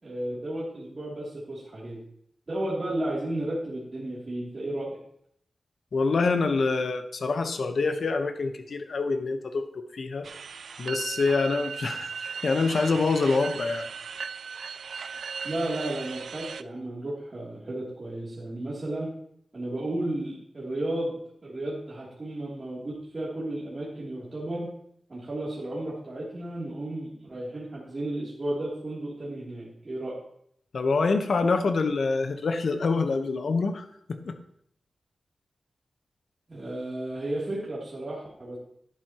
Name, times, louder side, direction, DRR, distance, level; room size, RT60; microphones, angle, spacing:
voice 1, 0.0-2.0 2.5-5.0 15.4-19.1 19.5-24.7 25.1-30.1 36.5-38.6, right 1 dB, 40° right, -7 dB, 2.9 m, -33 dB
voice 2, 5.9-10.3 10.8-13.9 30.7-34.3, left 4 dB, 70° left, 7 dB, 1.0 m, -26 dB
sound 1, 10.2-16.6, right 6 dB, 85° right, 0.3 m, -37 dB
11.5 x 11.0 x 3.0 m, 0.70 s
wide cardioid pair, 95°, 0 cm